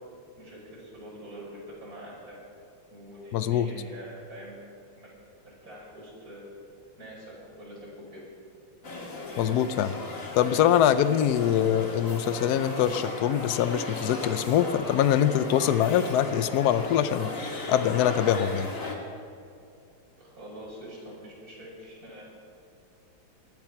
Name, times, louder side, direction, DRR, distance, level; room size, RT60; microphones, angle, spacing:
voice 1, 0.4-2.4 2.9-4.5 4.9-5.1 5.4-6.4 7.0-8.2 20.2-22.2, equal, 40° right, -5 dB, 5.9 m, -45 dB
voice 2, 3.3-3.7 9.4-10.0 10.3-18.7, left 10 dB, 70° left, 12 dB, 0.9 m, -24 dB
sound 1, 8.8-19.0, left 2 dB, 40° left, 2.0 m, -36 dB
19.5 x 12.0 x 5.9 m, 2.5 s
omnidirectional pair, 2.4 m